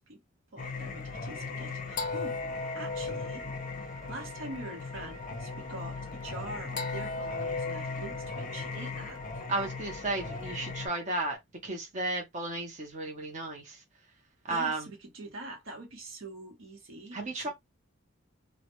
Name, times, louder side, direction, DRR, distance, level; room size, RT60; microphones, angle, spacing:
voice 1, 0.5-2.4 2.7-3.5 3.8-9.2 14.5-17.5, right 2 dB, 75° right, 0.8 m, -44 dB
Singing, 0.6-10.9, left 3 dB, 40° left, 0.5 m, -37 dB
sound 1, 2.5-11.4, left 2 dB, 5° left, 0.8 m, -49 dB
voice 2, 9.5-13.8 14.5-14.9 17.1-17.5, right 2 dB, 35° right, 0.6 m, -34 dB
2.2 x 2.1 x 2.8 m
head